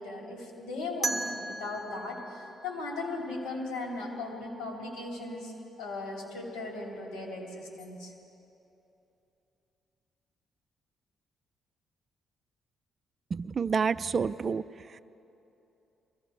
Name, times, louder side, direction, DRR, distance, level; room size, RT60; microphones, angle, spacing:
voice 1, 0.0-5.5 5.8-8.1, left 2 dB, 90° left, -2 dB, 3.2 m, -37 dB
sound 1, 1.0-3.9, right 3 dB, 10° right, 1.2 m, -37 dB
voice 2, 13.3-14.6, right 5 dB, 40° right, 15 dB, 0.3 m, -28 dB
23.0 x 16.5 x 3.3 m, 2.9 s
cardioid pair, 90°, 0 cm